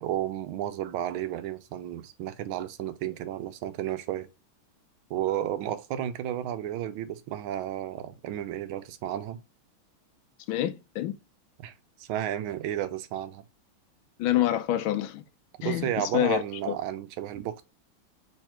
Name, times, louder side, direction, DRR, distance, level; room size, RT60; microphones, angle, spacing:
voice 1, 0.0-4.3 5.1-9.4 11.6-11.7 12.0-13.4 15.6-17.6, right 11 dB, 90° right, 1.4 m, -32 dB
voice 2, 10.5-11.1 14.2-15.2 15.6-16.7, left 12 dB, 80° left, 1.4 m, -27 dB
3.6 x 3.2 x 4.3 m
omnidirectional pair, 2.3 m